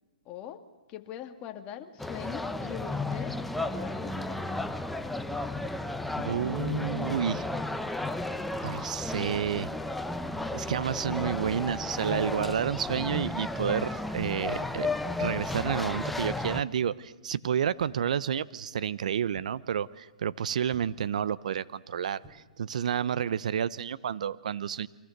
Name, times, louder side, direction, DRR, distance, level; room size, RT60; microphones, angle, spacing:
voice 1, 0.3-0.6 0.9-3.4 3.7-4.7, left 10 dB, 30° left, 6 dB, 2.3 m, -42 dB
sound 1, 2.0-16.6, left 2 dB, 5° left, 0.9 m, -33 dB
sound 2, 4.3-4.7 5.0-5.1 5.5-5.9 7.1-7.4 8.2-8.3 8.6-8.9 10.2-10.6 11.6-12.0 13.3-13.6 14.8-15.2 16.3-16.6 17.7-18.1 19.3-19.6 20.6-21.1 22.1-22.3, equal, 15° right, 3.8 m, -54 dB
voice 2, 6.2-7.5 8.6-9.7 10.5-24.9, right 8 dB, 65° right, 17 dB, 0.9 m, -30 dB
29.5 x 24.5 x 6.7 m, 1.1 s
hypercardioid pair, 135°, 4 cm